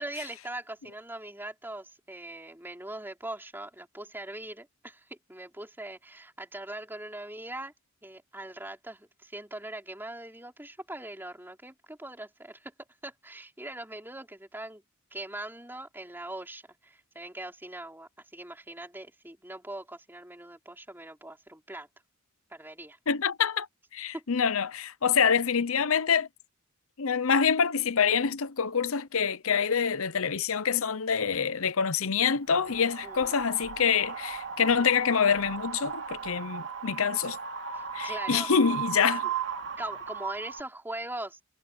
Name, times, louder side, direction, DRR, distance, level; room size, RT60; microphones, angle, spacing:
voice 1, 0.0-7.7 8.0-12.7 13.0-14.8 15.1-21.9 22.5-23.0 24.1-24.2 33.0-33.3 37.7-38.5 39.8-41.4, right 1 dB, 10° right, 4.7 m, -41 dB
voice 2, 23.1-23.7 23.9-26.3 27.0-37.4 37.9-39.3, left 6 dB, 65° left, 0.7 m, -26 dB
Wind, 32.5-40.6, right 6 dB, 55° right, 2.6 m, -36 dB
head